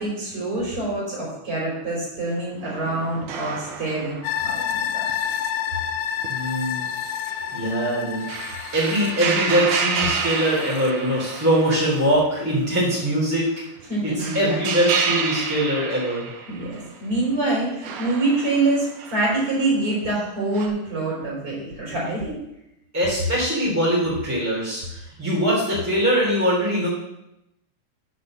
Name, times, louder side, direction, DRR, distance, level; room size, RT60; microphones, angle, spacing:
voice 1, 0.0-4.2 4.4-5.1 13.9-14.6 16.5-22.4, right 2 dB, 45° right, -5 dB, 5.2 m, -25 dB
sound 1, 2.6-5.9 6.2-6.3 6.8-6.9 7.3-12.2 12.5-12.6 13.8-16.8 17.8-19.6 20.5-20.7, right 5 dB, 75° right, 2.5 m, -29 dB
sound 2, 4.2-11.5 11.9-12.0, left 9 dB, 80° left, 2.2 m, -30 dB
voice 2, 6.3-6.8 7.2-7.3 7.5-8.3 8.7-13.5 14.0-16.3 22.9-26.9, equal, 5° right, -7 dB, 3.0 m, -22 dB
9.6 x 6.9 x 6.5 m, 0.86 s
omnidirectional pair, 3.6 m